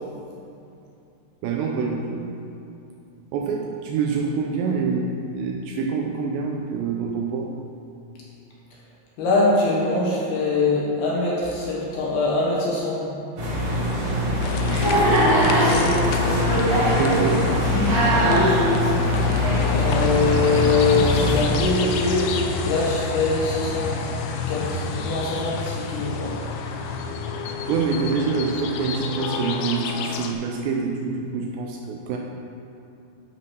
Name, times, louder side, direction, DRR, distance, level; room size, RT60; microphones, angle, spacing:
voice 1, 1.4-2.4 3.3-7.5 17.0-17.6 27.7-32.2, right 5 dB, 80° right, 1 dB, 2.6 m, -26 dB
voice 2, 9.2-13.2 15.5-15.9 18.2-18.6 19.7-22.3 22.6-23.9 24.5-26.4, left 3 dB, 70° left, -5 dB, 2.8 m, -23 dB
sound 1, 13.4-21.4, equal, 45° right, 2.6 m, -21 dB
sound 2, 14.4-30.3, left 5 dB, 85° left, 3.1 m, -29 dB
11.0 x 4.8 x 6.1 m, 2.7 s
omnidirectional pair, 5.5 m